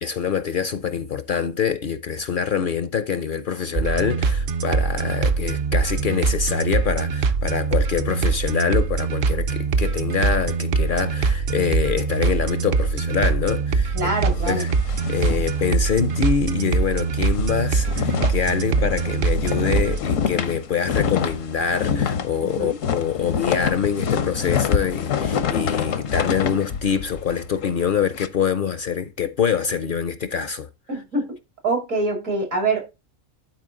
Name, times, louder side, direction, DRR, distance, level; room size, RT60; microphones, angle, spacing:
voice 1, 0.0-14.0 14.5-14.7 15.1-30.7, left 7 dB, 55° left, 0.6 m, -25 dB
sound 1, 3.8-20.0, right 4 dB, 55° right, 0.7 m, -23 dB
voice 2, 13.9-14.7 22.4-22.8 30.9-31.4 31.6-32.9, right 2 dB, 80° right, 3.2 m, -25 dB
sound 2, 14.0-16.3 16.6-16.8 17.1-28.3, left 7 dB, 80° left, 1.2 m, -27 dB
11.5 x 4.5 x 3.8 m
omnidirectional pair, 1.3 m